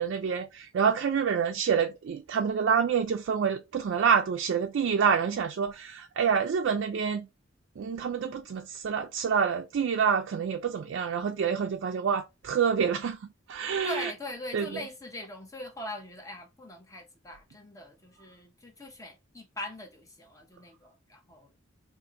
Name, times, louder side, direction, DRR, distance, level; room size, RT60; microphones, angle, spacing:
voice 1, 0.0-7.3 7.8-14.1 14.5-14.8, right 6 dB, 60° right, 0.3 m, -27 dB
voice 2, 13.8-21.5, left 1 dB, 15° left, 0.7 m, -41 dB
2.5 x 2.5 x 3.7 m
head